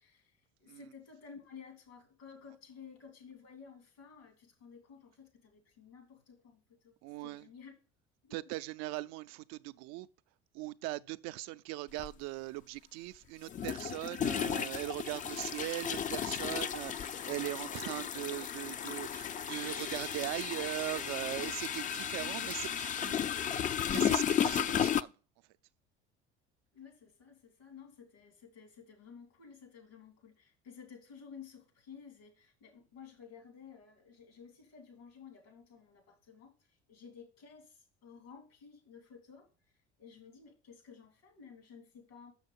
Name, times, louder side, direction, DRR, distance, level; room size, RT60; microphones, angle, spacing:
voice 1, 0.0-6.9 7.2-7.7 8.2-8.5 22.1-23.6 26.7-39.5 40.0-42.3, left 6 dB, 80° left, 2.8 m, -54 dB
voice 2, 7.0-7.5 8.3-10.1 10.5-23.2 23.5-23.6 23.9-25.1, right 18 dB, 60° right, 0.5 m, -40 dB
sound 1, 12.0-12.1 13.5-25.0, left 8 dB, 25° left, 0.4 m, -34 dB
6.6 x 6.4 x 5.3 m
hypercardioid pair, 65°, 30 cm